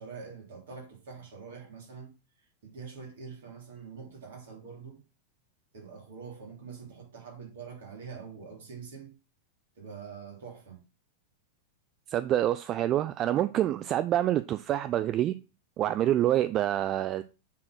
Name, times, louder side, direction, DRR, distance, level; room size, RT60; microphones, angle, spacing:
voice 1, 0.0-2.1 2.6-5.0 5.7-9.2 9.8-10.8, right 5 dB, 60° right, 3.2 m, -45 dB
voice 2, 12.1-15.4 15.8-17.2, right 12 dB, 35° right, 0.4 m, -27 dB
7.3 x 4.2 x 6.0 m
figure-of-eight pair, 90°, 0 cm